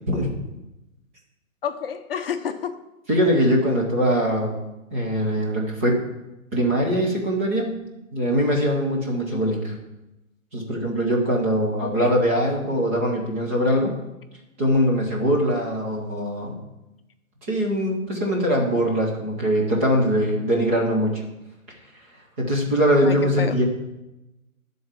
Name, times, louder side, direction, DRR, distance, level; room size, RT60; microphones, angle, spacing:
voice 1, 1.6-2.8 9.3-9.5 11.8-12.1 23.0-23.5, left 7 dB, 40° left, 8 dB, 0.8 m, -30 dB
voice 2, 3.1-4.6 4.9-6.0 6.5-7.7 8.1-9.7 10.5-14.0 14.6-16.6 17.5-21.2 22.4-23.6, equal, 10° right, -3 dB, 0.6 m, -22 dB
11.0 x 3.9 x 7.3 m, 0.96 s
hypercardioid pair, 155°, 43 cm